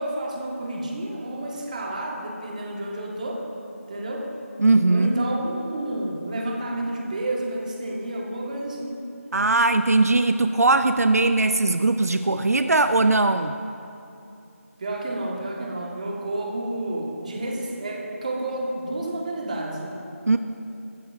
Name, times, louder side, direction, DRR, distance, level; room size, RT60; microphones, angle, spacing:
voice 1, 0.0-3.4 3.9-4.3 4.9-9.0 14.8-20.0, right 1 dB, 30° right, -1 dB, 1.8 m, -30 dB
voice 2, 4.6-5.2 9.3-13.6 20.3-20.4, right 2 dB, 80° right, 9 dB, 0.5 m, -20 dB
22.5 x 13.0 x 2.7 m, 2.8 s
figure-of-eight pair, 170°, 8 cm